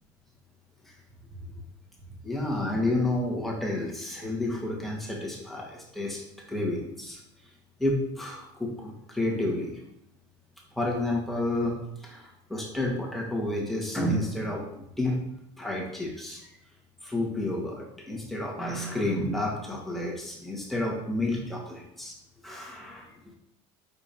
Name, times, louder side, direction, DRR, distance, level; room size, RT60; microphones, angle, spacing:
voice 1, 2.2-6.2 6.5-7.2 7.8-9.8 10.7-15.2 15.6-16.5 17.0-22.1 22.4-23.2, left 1 dB, ahead, -2 dB, 1.7 m, -30 dB
5.3 x 4.4 x 4.4 m, 0.80 s
supercardioid pair, 125°, 14 cm